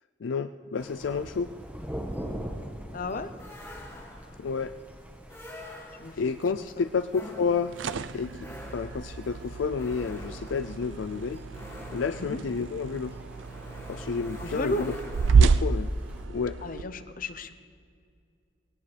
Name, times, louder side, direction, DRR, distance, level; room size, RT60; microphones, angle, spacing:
voice 1, 0.2-1.5 4.4-4.7 6.2-7.7 8.1-8.3 8.7-11.4 11.9-13.2 13.9-14.9 15.3-15.9 16.3-16.6, left 5 dB, 80° left, 8 dB, 0.4 m, -30 dB
Thunder, 0.8-16.3, equal, 10° right, 1.3 m, -44 dB
voice 2, 2.9-3.3 6.0-6.2 12.2-12.4 14.4-14.9 16.6-17.6, left 2 dB, 50° left, 10 dB, 0.8 m, -33 dB
sound 1, 3.4-4.5 5.3-6.3 7.1-15.8, left 1 dB, 15° left, 2.3 m, -46 dB
sound 2, 7.5-16.8, right 5 dB, 80° right, 0.5 m, -29 dB
20.5 x 18.0 x 3.4 m, 2.3 s
head